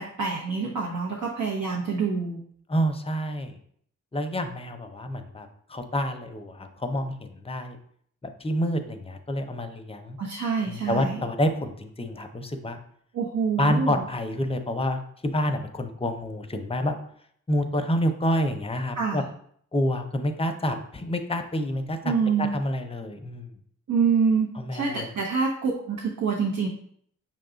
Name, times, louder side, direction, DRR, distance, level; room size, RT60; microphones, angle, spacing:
voice 1, 0.0-2.4 10.2-11.2 13.1-14.0 19.0-19.2 22.0-22.5 23.9-26.7, right 5 dB, 80° right, -3 dB, 0.9 m, -26 dB
voice 2, 2.7-3.6 4.1-7.8 8.2-10.2 10.7-12.8 13.6-17.0 17.5-19.2 19.7-22.1 22.4-23.5 24.6-25.1, equal, 20° left, 6 dB, 0.5 m, -28 dB
5.9 x 2.3 x 3.8 m, 0.63 s
cardioid pair, 75°, 32 cm